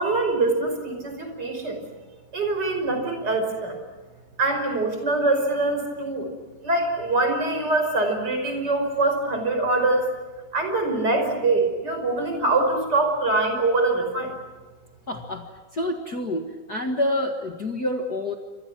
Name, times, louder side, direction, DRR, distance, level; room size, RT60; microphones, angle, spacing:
voice 1, 0.0-1.8 2.3-3.8 4.4-6.3 6.6-10.1 10.5-14.4, right 2 dB, 25° right, 5 dB, 5.6 m, -24 dB
voice 2, 15.1-18.3, left 1 dB, 50° left, 2 dB, 1.1 m, -28 dB
29.0 x 26.5 x 6.1 m, 1.3 s
omnidirectional pair, 4.7 m